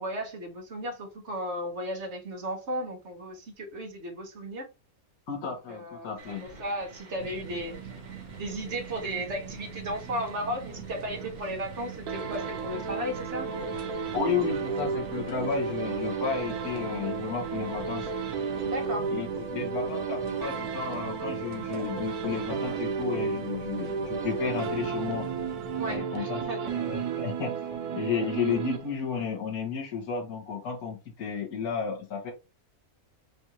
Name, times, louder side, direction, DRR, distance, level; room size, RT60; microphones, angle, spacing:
voice 1, 0.0-4.7 5.7-7.8 8.3-13.5 18.6-19.1 25.8-26.7, equal, 50° right, 1.4 m, -35 dB
voice 2, 5.3-6.5 14.1-18.1 19.1-25.3 25.9-26.4 26.7-27.6 27.9-32.3, left 6 dB, 75° left, 1.8 m, -32 dB
sound 1, 6.2-18.7, right 2 dB, 35° right, 1.1 m, -49 dB
sound 2, 7.2-26.0, right 8 dB, 65° right, 1.1 m, -44 dB
sound 3, 12.1-29.3, right 5 dB, 90° right, 1.3 m, -33 dB
5.2 x 2.7 x 2.9 m
omnidirectional pair, 1.6 m